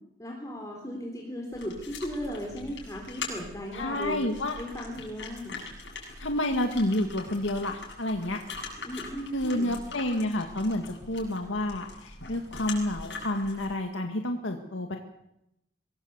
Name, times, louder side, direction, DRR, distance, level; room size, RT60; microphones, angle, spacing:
voice 1, 0.2-4.2 4.6-5.6 8.8-9.8, equal, 15° left, 0 dB, 3.6 m, -36 dB
sound 1, 1.5-13.7, left 4 dB, 70° left, 7.9 m, -42 dB
voice 2, 3.7-4.6 6.2-8.4 9.3-15.0, left 1 dB, 85° left, 4 dB, 1.9 m, -29 dB
24.0 x 19.0 x 8.1 m, 0.85 s
head